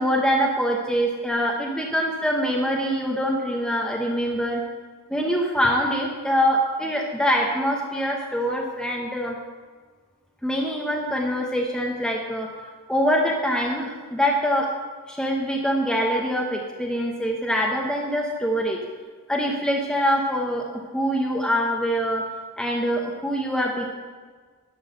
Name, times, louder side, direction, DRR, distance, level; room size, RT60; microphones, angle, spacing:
voice 1, 0.0-4.6 5.1-9.3 10.4-12.5 12.9-14.7 15.1-18.8 19.3-20.7 20.9-22.2 22.6-24.0, equal, 5° left, -1 dB, 0.8 m, -24 dB
11.0 x 6.3 x 6.6 m, 1.5 s
head